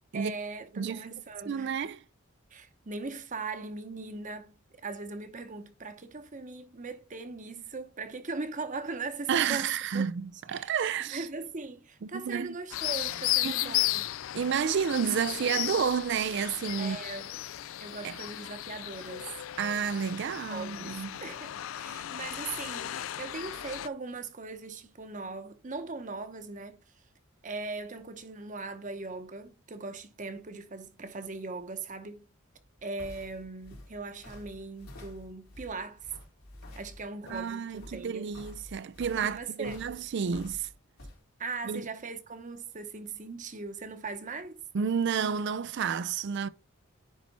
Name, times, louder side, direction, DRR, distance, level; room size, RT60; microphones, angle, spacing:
voice 1, 0.1-1.7 2.5-10.1 10.5-10.8 11.1-14.1 16.8-17.3 17.8-19.3 20.2-26.8 27.4-32.3 32.8-36.1 36.8-38.4 39.2-39.8 41.4-44.6, right 3 dB, 35° right, 0.9 m, -39 dB
voice 2, 1.5-2.0 9.3-11.2 12.1-12.5 13.4-13.8 14.3-17.0 18.0-18.1 19.6-21.1 37.3-40.7 41.7-41.8 44.7-46.5, right 7 dB, 55° right, 0.4 m, -30 dB
sound 1, 12.7-23.9, left 14 dB, 65° left, 0.3 m, -35 dB
sound 2, 32.5-41.2, left 1 dB, 85° left, 3.6 m, -49 dB
10.0 x 4.2 x 4.2 m
head